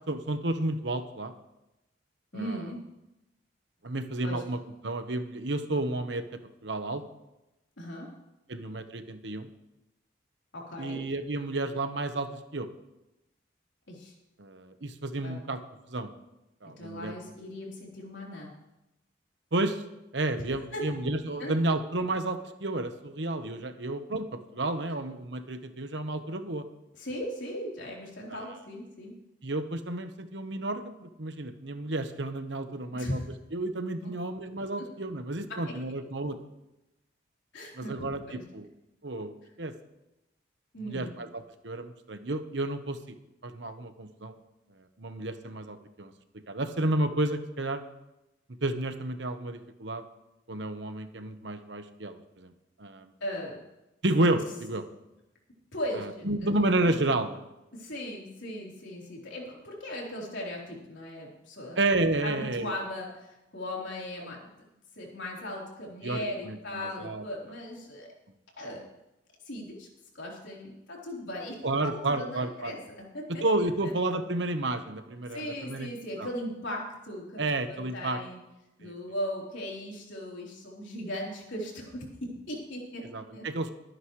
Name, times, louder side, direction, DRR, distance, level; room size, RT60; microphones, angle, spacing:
voice 1, 0.1-1.3 2.3-2.6 3.8-6.2 6.6-7.0 8.5-9.5 10.8-12.7 14.4-15.6 15.9-16.1 16.6-17.3 19.5-19.8 20.1-24.3 24.5-26.6 28.3-28.5 29.4-33.2 33.5-36.4 37.8-38.7 39.0-39.7 40.9-41.3 41.6-43.0 43.4-44.3 45.0-46.1 46.5-47.8 48.6-50.0 50.5-52.5 52.8-53.1 54.0-54.8 56.0-57.4 61.8-62.7 66.0-67.2 71.6-72.7 73.4-75.9 76.2-76.3 77.4-78.2 78.8-78.9 83.1-83.7, right 2 dB, 75° right, 8 dB, 1.1 m, -31 dB
voice 2, 2.3-2.8 4.2-4.4 7.8-8.1 10.5-11.0 13.9-14.1 15.2-15.4 16.8-18.5 20.3-20.4 20.7-20.9 21.4-21.6 26.9-29.1 32.9-33.2 34.0-34.1 34.8-34.9 35.5-35.7 37.5-38.4 40.7-41.1 53.2-53.6 55.7-56.5 56.8-57.0 57.7-61.8 62.2-64.4 65.0-68.1 68.6-68.8 69.5-69.9 70.1-73.4 73.8-73.9 75.3-78.4 78.8-83.5, left 1 dB, 80° left, -3 dB, 3.8 m, -38 dB
23.0 x 9.4 x 3.2 m, 0.95 s
head